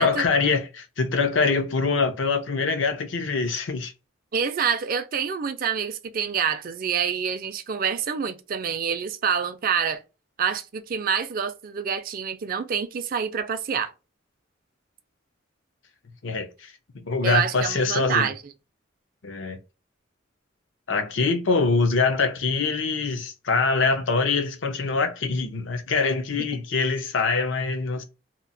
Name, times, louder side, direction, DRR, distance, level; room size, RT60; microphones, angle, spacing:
voice 1, 0.0-3.9 16.2-18.3 19.2-19.6 20.9-28.0, left 4 dB, 75° left, 0.6 m, -24 dB
voice 2, 4.3-10.0 10.4-13.9 17.2-18.4, right 7 dB, 45° right, 0.4 m, -27 dB
2.8 x 2.0 x 2.6 m
head